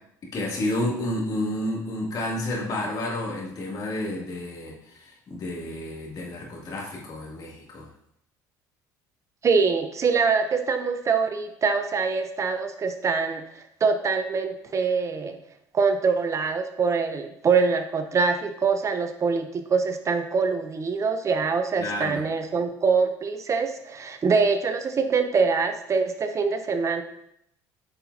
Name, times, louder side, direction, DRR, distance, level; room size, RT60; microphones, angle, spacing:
voice 1, 0.3-7.9 21.8-22.2, left 1 dB, 50° left, -4 dB, 2.7 m, -30 dB
voice 2, 9.4-15.4 15.7-27.0, right 5 dB, 35° right, 8 dB, 0.7 m, -24 dB
9.1 x 5.7 x 2.8 m, 0.77 s
supercardioid pair, 85°, 8 cm